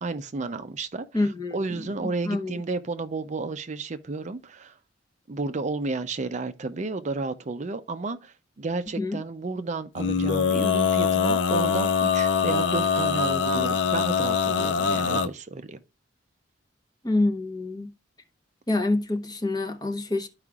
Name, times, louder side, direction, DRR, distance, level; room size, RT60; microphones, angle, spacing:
voice 1, 0.0-4.8 5.3-15.8, right 3 dB, 40° right, 0.5 m, -32 dB
voice 2, 1.1-2.6 9.0-9.2 17.0-17.9 18.7-20.3, left 2 dB, 20° left, 0.9 m, -27 dB
Male singing, 10.0-15.3, left 6 dB, 65° left, 0.5 m, -23 dB
12.5 x 4.8 x 2.3 m
head